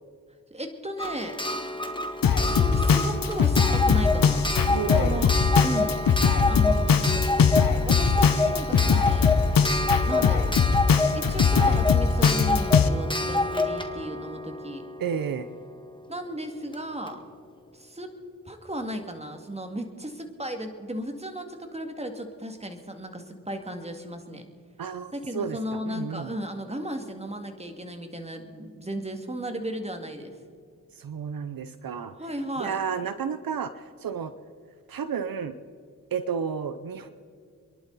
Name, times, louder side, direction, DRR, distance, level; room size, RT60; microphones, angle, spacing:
voice 1, 0.5-1.4 2.3-4.5 4.9-5.3 5.6-6.0 6.4-7.3 7.8-9.3 10.1-10.5 11.1-14.8 16.1-17.2 17.7-18.1 18.5-24.5 25.1-30.4 32.2-32.8, right 1 dB, 20° right, 5 dB, 2.2 m, -35 dB
Clock, 1.0-15.6 16.7-16.8 17.1-17.2, left 2 dB, 15° left, 1.7 m, -28 dB
Drum kit, 2.2-12.9, left 6 dB, 75° left, 0.9 m, -21 dB
voice 2, 4.7-5.2 15.0-15.5 24.8-25.6 25.9-26.3 31.0-32.1 32.6-33.7 34.0-34.3 34.9-35.6 36.1-37.1, right 7 dB, 80° right, 12 dB, 0.7 m, -31 dB
28.0 x 11.0 x 4.1 m, 2.2 s
cardioid pair, 50°, 34 cm